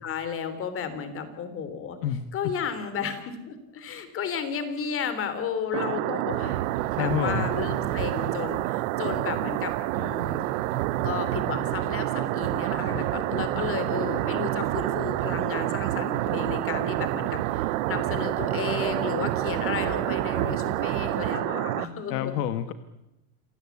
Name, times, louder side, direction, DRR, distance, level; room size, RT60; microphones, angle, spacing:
voice 1, 0.0-2.0 2.3-6.6 6.9-10.4 11.0-22.4, left 7 dB, 25° left, 10 dB, 3.3 m, -33 dB
sound 1, 5.7-21.9, right 18 dB, 55° right, 1.0 m, -29 dB
sound 2, 6.3-21.3, right 11 dB, 70° right, 1.7 m, -35 dB
voice 2, 6.9-7.5 22.1-22.7, left 11 dB, 70° left, 10 dB, 1.5 m, -28 dB
28.0 x 16.0 x 8.4 m, 0.92 s
supercardioid pair, 150°, 48 cm